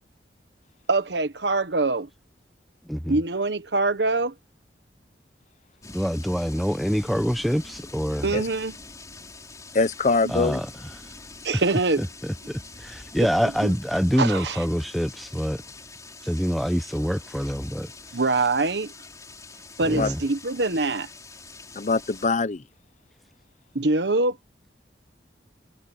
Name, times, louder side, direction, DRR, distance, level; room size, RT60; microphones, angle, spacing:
voice 1, 0.9-2.1 3.1-4.3 8.2-8.8 11.4-12.0 13.4-13.7 14.2-14.6 18.1-18.9 19.8-21.1 23.7-24.4, right 3 dB, 75° right, 1.3 m, -24 dB
voice 2, 2.8-3.2 5.9-8.4 10.3-10.7 11.5-11.6 12.0-15.6 16.2-17.9 19.9-20.2, equal, ahead, 0.9 m, -26 dB
sound 1, 5.8-22.3, left 3 dB, 20° left, 4.3 m, -45 dB
voice 3, 9.7-10.6 19.9-20.1 21.7-22.6, left 3 dB, 45° left, 0.6 m, -23 dB
head